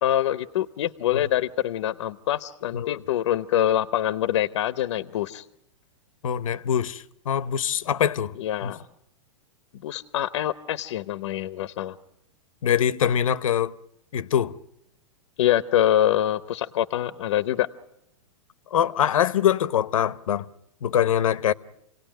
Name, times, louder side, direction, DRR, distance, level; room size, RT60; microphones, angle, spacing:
voice 1, 0.0-5.5 8.4-8.8 9.8-12.0 15.4-17.7, left 12 dB, 60° left, 0.8 m, -25 dB
voice 2, 6.2-8.3 8.6-8.7 12.6-13.7 14.1-14.6 18.7-20.5 20.8-21.5, left 9 dB, 85° left, 0.9 m, -23 dB
27.5 x 18.0 x 9.1 m
supercardioid pair, 165°, 17 cm